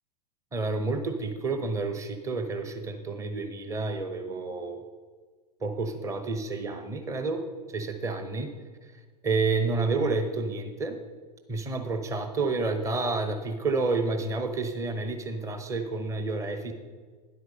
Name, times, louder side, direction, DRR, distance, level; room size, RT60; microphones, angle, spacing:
voice 1, 0.5-4.8 5.6-7.4 7.7-8.5 8.8-8.9 9.2-11.0 11.5-16.7, right 3 dB, 15° right, 7 dB, 1.0 m, -29 dB
10.5 x 8.0 x 5.2 m, 1.5 s
figure-of-eight pair, 100°, 21 cm